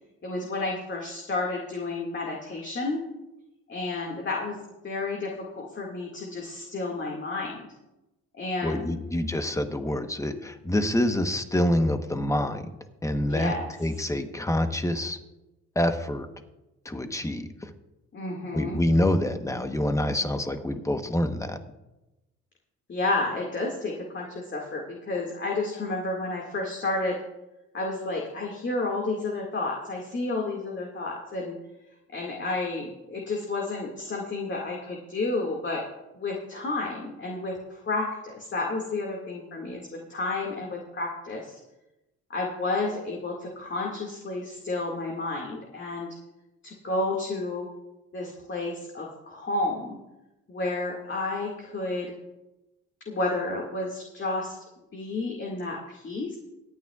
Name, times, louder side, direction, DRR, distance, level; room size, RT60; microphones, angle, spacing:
voice 1, 0.2-3.0 3.7-4.6 4.8-7.7 8.3-9.0 13.3-13.7 18.1-18.8 22.9-27.2 27.7-31.6 32.1-35.9 36.1-41.6 42.3-46.2 46.6-47.7 48.1-50.0 50.5-52.1 53.1-54.6 54.9-56.4, left 2 dB, 40° left, -2 dB, 2.1 m, -31 dB
voice 2, 8.6-12.7 13.0-13.5 13.8-15.2 15.7-16.3 16.8-17.7 18.5-21.6, left 1 dB, 10° left, 7 dB, 1.1 m, -26 dB
24.0 x 9.2 x 2.4 m, 0.98 s
cardioid pair, 90°, 30 cm